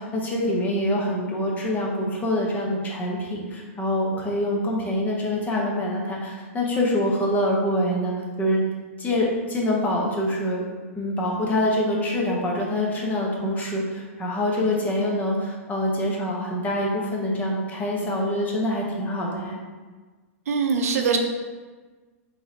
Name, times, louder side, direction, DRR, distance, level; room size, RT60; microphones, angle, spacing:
voice 1, 0.0-8.1 8.4-8.6 9.0-10.6 10.9-19.6, left 1 dB, 20° left, -2 dB, 1.0 m, -25 dB
voice 2, 20.5-21.2, right 5 dB, 80° right, 4 dB, 0.6 m, -22 dB
3.5 x 3.3 x 4.0 m, 1.4 s
hypercardioid pair, 125°, 8 cm